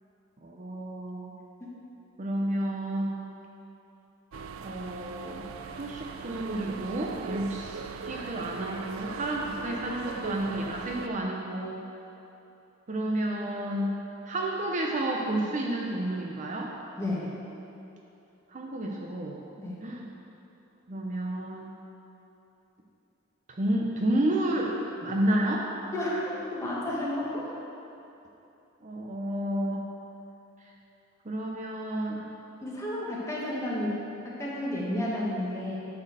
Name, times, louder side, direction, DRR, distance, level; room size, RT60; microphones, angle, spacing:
voice 1, 0.4-1.3 2.2-3.2 4.6-5.5 5.8-11.8 12.9-14.0 14.2-16.8 18.5-19.4 19.8-20.1 20.9-21.7 23.6-24.7 25.0-25.7 28.8-29.9 31.2-32.3, right 1 dB, 40° right, -1 dB, 0.7 m, -30 dB
sound 1, 4.3-11.1, right 5 dB, 90° right, 0.4 m, -39 dB
voice 2, 17.0-17.3 19.6-19.8 25.9-27.5 32.6-35.8, left 1 dB, 15° left, -6 dB, 1.7 m, -32 dB
10.5 x 4.4 x 6.6 m, 2.9 s
head